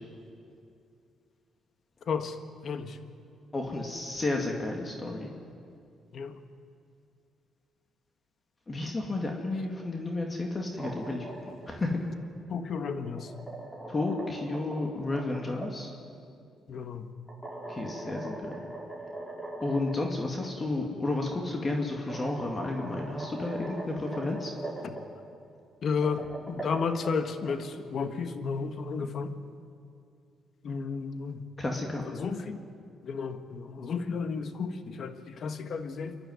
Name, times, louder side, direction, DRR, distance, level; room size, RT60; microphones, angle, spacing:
voice 1, 2.6-2.9 6.1-6.4 12.5-13.3 16.7-17.1 25.8-29.3 30.6-31.4 32.2-32.6 33.1-36.2, left 5 dB, 60° left, 9 dB, 1.4 m, -32 dB
voice 2, 3.5-5.3 8.7-11.2 11.7-12.0 13.9-15.9 17.7-18.5 19.6-24.5 31.6-32.0, left 2 dB, 30° left, 1 dB, 2.5 m, -32 dB
sound 1, 10.6-11.7 12.8-15.7 17.3-20.1 20.4-20.5 21.6-21.7 22.1-25.0 25.8-27.5, right 2 dB, 5° left, 5.4 m, -40 dB
28.5 x 11.5 x 9.5 m, 2.4 s
cardioid pair, 90°, 0 cm